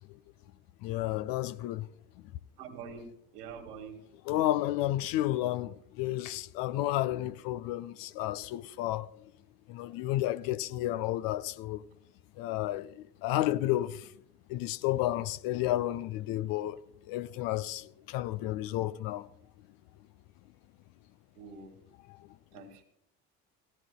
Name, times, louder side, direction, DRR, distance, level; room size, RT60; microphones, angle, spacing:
voice 1, 0.8-1.9 4.3-9.1 9.7-11.8 12.4-14.1 14.5-16.8 17.1-19.3 22.1-22.3, left 14 dB, 50° left, 0.6 m, -32 dB
voice 2, 2.6-3.0 3.3-4.0 21.4-21.8 22.5-22.8, right 6 dB, 70° right, 2.2 m, -45 dB
17.0 x 14.5 x 2.3 m
figure-of-eight pair, 55°, 47 cm